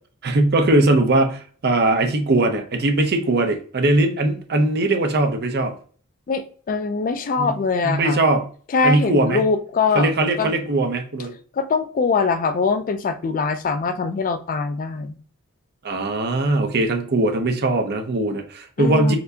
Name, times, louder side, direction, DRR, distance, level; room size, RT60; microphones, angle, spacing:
voice 1, 0.2-5.7 7.4-7.5 7.8-8.5 8.8-9.4 9.9-11.3 15.8-19.2, right 2 dB, 50° right, 5 dB, 0.6 m, -20 dB
voice 2, 6.3-8.2 8.7-10.1 10.4-10.6 11.5-15.2 18.8-19.2, left 4 dB, 40° left, 10 dB, 0.3 m, -22 dB
4.2 x 2.6 x 2.7 m, 0.43 s
head